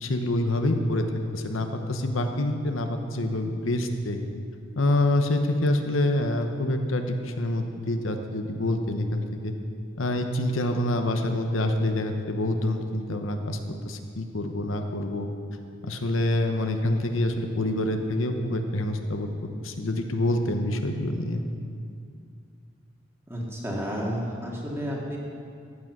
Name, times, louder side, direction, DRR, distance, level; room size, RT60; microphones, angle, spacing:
voice 1, 0.0-1.0 1.3-4.2 4.8-9.5 10.0-13.6 13.8-15.3 15.8-19.3 19.6-21.4, left 1 dB, 75° left, 5 dB, 1.0 m, -26 dB
voice 2, 23.3-25.2, equal, 15° right, -3 dB, 2.2 m, -31 dB
14.5 x 8.8 x 6.1 m, 2.3 s
head